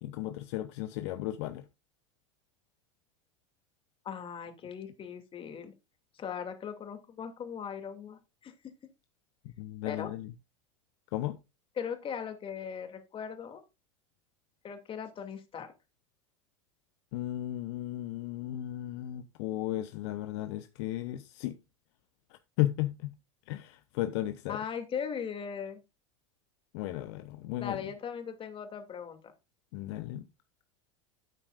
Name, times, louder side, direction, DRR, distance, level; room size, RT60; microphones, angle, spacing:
voice 1, 0.0-1.7 9.6-10.3 11.1-11.4 17.1-21.6 22.3-23.1 23.5-24.6 26.7-27.9 29.7-30.3, left 14 dB, 60° left, 0.9 m, -35 dB
voice 2, 4.0-5.7 6.2-8.5 9.9-10.1 11.8-13.6 14.6-15.7 24.5-25.8 27.6-29.2, left 7 dB, 35° left, 2.6 m, -39 dB
12.0 x 8.8 x 2.5 m
hypercardioid pair, 85°, 16 cm